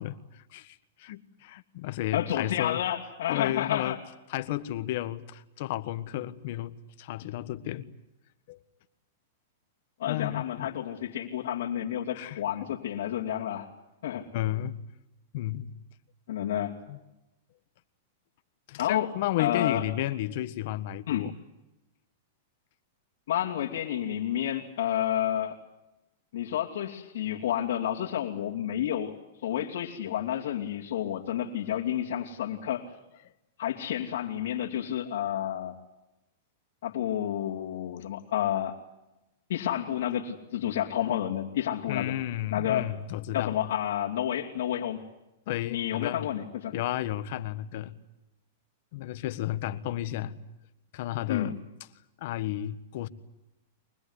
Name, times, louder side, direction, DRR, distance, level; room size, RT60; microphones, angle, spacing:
voice 1, 0.0-2.8 3.3-4.0 4.3-7.9 8.5-8.6 10.1-10.7 12.1-12.7 14.3-14.7 15.3-15.7 16.9-17.0 18.7-21.4 41.9-43.6 45.5-46.3 46.7-48.0 48.9-50.4 50.9-51.6 52.2-53.1, left 13 dB, 55° left, 1.4 m, -33 dB
voice 2, 2.1-4.0 10.0-13.7 14.0-14.3 16.3-16.8 18.8-19.1 19.4-19.8 21.1-21.3 23.3-25.6 26.3-29.1 29.4-32.8 33.6-35.7 36.8-38.7 39.5-42.1 42.5-42.9 43.3-45.0 45.7-46.7 51.3-51.5, left 11 dB, 70° left, 2.9 m, -30 dB
24.0 x 20.5 x 9.9 m
supercardioid pair, 155°, 0 cm